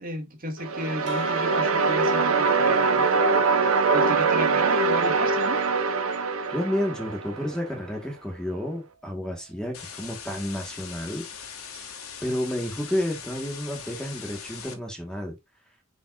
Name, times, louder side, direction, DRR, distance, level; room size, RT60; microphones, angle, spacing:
voice 1, 0.0-5.6 11.7-11.8, right 1 dB, 40° right, 2.2 m, -35 dB
sound 1, 0.6-7.6, right 4 dB, 75° right, 1.2 m, -23 dB
sound 2, 1.1-5.9 6.3-8.1 9.2-9.8, right 1 dB, 55° right, 2.3 m, -42 dB
voice 2, 6.5-11.2 11.7-11.9 12.2-15.4, left 1 dB, 5° left, 1.5 m, -31 dB
sound 3, 9.7-14.7, left 7 dB, 75° left, 2.1 m, -41 dB
10.0 x 5.0 x 2.5 m
head